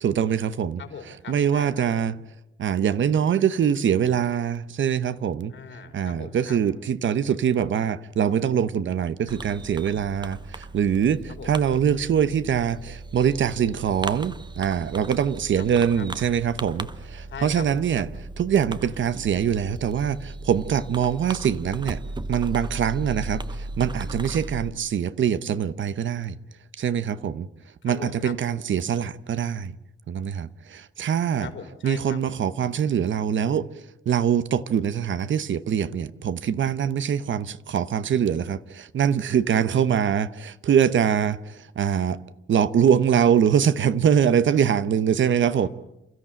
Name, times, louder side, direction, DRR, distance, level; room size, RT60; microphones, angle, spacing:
voice 1, 0.0-0.8 1.3-2.1 2.6-5.5 5.9-18.1 18.4-22.0 22.3-26.3 26.8-27.5 27.8-29.7 30.1-31.5 31.8-33.7 34.1-42.2 42.5-45.7, right 8 dB, 70° right, 0.9 m, -23 dB
voice 2, 0.8-2.1 5.5-6.6 11.3-11.6 15.6-16.1 17.3-18.0 27.8-28.4 31.4-32.4 45.5-45.7, left 6 dB, 70° left, 3.4 m, -40 dB
Fireworks, 9.3-24.7, right 2 dB, 20° right, 0.8 m, -37 dB
29.0 x 14.0 x 8.9 m
wide cardioid pair, 135°, 20 cm